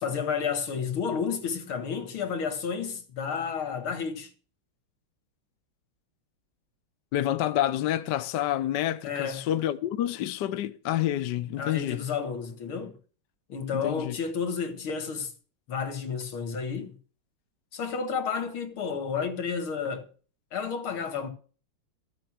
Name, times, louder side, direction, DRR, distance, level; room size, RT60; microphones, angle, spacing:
voice 1, 0.0-4.3 9.0-9.5 11.6-13.0 13.5-15.3 15.7-16.9 17.7-20.1 20.5-21.3, left 6 dB, 85° left, 2.6 m, -31 dB
voice 2, 7.1-12.0 13.7-14.2, left 12 dB, 65° left, 1.2 m, -28 dB
14.0 x 7.9 x 6.1 m
omnidirectional pair, 2.3 m